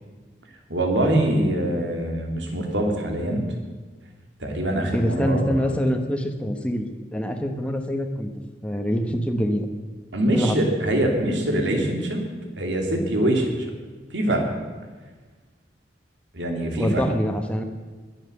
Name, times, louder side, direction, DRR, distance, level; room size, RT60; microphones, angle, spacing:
voice 1, 0.7-3.4 4.4-5.7 10.1-12.3 12.6-13.7 14.1-14.4 16.3-17.0, right 1 dB, 80° right, 2 dB, 3.0 m, -23 dB
voice 2, 4.9-6.9 7.1-8.3 8.6-9.7 10.3-10.6 16.7-17.6, equal, 5° left, 4 dB, 1.0 m, -25 dB
21.0 x 7.5 x 6.9 m, 1.4 s
head